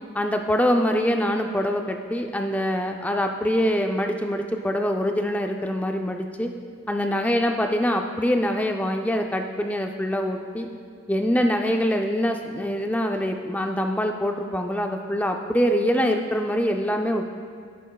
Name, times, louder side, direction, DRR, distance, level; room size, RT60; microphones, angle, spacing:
voice 1, 0.1-6.5 6.9-10.7 11.1-17.3, equal, 5° left, 4 dB, 0.4 m, -24 dB
16.5 x 6.2 x 2.3 m, 2.2 s
head